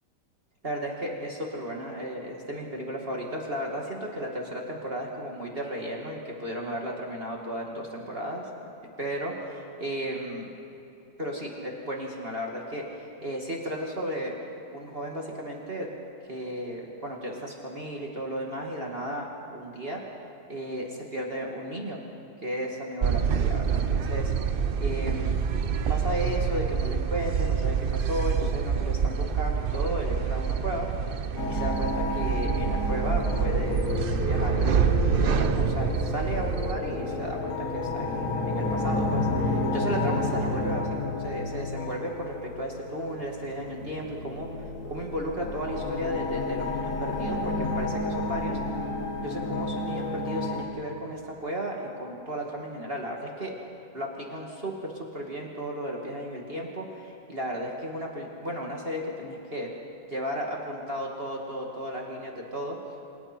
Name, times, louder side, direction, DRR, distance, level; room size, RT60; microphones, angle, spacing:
voice 1, 0.6-8.7 9.0-10.5 11.2-15.9 16.3-20.0 20.5-22.0 22.4-25.3 25.9-30.9 31.5-33.8 34.3-38.1 38.4-48.6 49.2-53.5 53.9-59.7 60.1-62.8, equal, 35° right, -1 dB, 2.3 m, -34 dB
sound 1, 23.0-36.7, right 7 dB, 60° right, 0.6 m, -27 dB
sound 2, 31.4-50.6, left 2 dB, 50° left, 2.0 m, -30 dB
28.5 x 26.5 x 4.5 m, 2.9 s
omnidirectional pair, 1.8 m